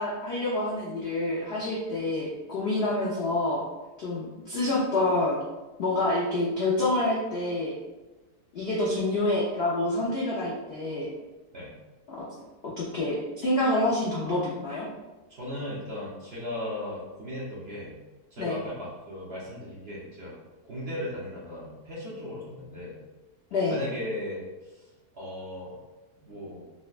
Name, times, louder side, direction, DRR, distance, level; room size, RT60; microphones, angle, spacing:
voice 1, 0.0-3.6 4.0-5.4 5.8-7.7 8.5-11.1 12.8-14.9 18.4-18.6 23.5-23.8, left 2 dB, 65° left, -6 dB, 0.6 m, -27 dB
voice 2, 15.3-18.0 18.3-20.4 20.6-23.0 23.7-24.4 24.7-24.8 25.1-25.8 26.2-26.7, left 1 dB, 50° right, -7 dB, 0.8 m, -37 dB
4.0 x 2.1 x 2.4 m, 1.1 s
omnidirectional pair, 1.7 m